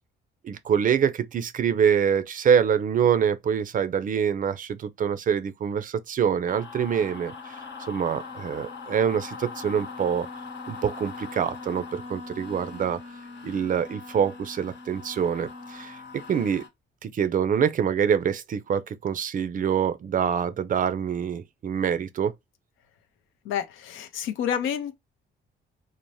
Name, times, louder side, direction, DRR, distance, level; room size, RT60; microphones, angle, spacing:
voice 1, 0.4-7.6 7.9-10.3 10.7-13.0 13.4-16.0 16.3-16.6 17.0-22.3, right 7 dB, 45° right, 0.4 m, -25 dB
sound 1, 6.5-16.7, left 4 dB, 65° left, 1.0 m, -41 dB
voice 2, 23.5-24.9, left 9 dB, 85° left, 0.5 m, -29 dB
2.6 x 2.0 x 3.0 m
cardioid pair, 90°, 20 cm